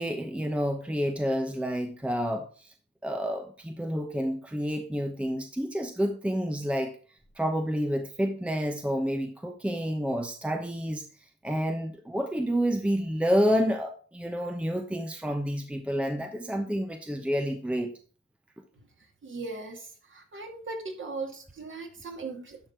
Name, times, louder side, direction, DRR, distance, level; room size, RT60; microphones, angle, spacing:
voice 1, 0.0-2.7 3.0-7.0 7.4-11.1 11.4-17.9, equal, 5° right, 0.9 m, -29 dB
voice 2, 19.0-22.6, right 3 dB, 40° right, 2.3 m, -39 dB
11.5 x 4.3 x 4.5 m
cardioid pair, 90°, 30 cm